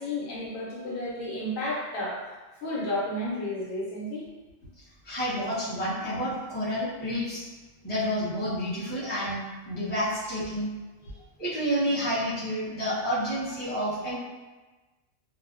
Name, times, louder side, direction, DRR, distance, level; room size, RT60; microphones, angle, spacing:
voice 1, 0.0-4.3 11.0-11.1, left 1 dB, 80° left, -5 dB, 1.1 m, -32 dB
voice 2, 5.0-7.5 7.8-10.7 11.4-14.1, equal, 10° left, -11 dB, 0.6 m, -29 dB
2.5 x 2.1 x 2.4 m, 1.2 s
omnidirectional pair, 1.4 m